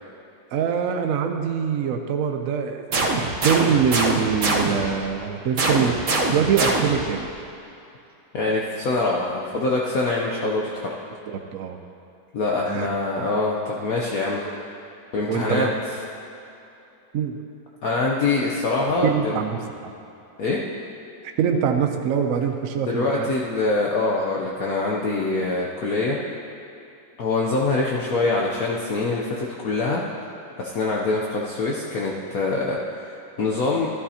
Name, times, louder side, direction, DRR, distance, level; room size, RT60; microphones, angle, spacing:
voice 1, 0.5-6.0 6.3-7.3 11.3-11.8 12.7-12.9 14.4-14.5 15.3-15.7 17.1-17.4 19.0-19.9 21.4-23.3, right 7 dB, 70° right, 5 dB, 0.8 m, -24 dB
sound 1, 2.9-5.0 5.6-7.1, right 2 dB, 50° right, 1.2 m, -23 dB
voice 2, 8.3-10.9 12.3-14.4 15.1-15.7 17.8-19.4 20.4-20.6 22.8-26.2 27.2-30.0 30.6-33.9, left 3 dB, 60° left, -3 dB, 1.0 m, -24 dB
13.0 x 11.5 x 2.8 m, 2.7 s
omnidirectional pair, 2.1 m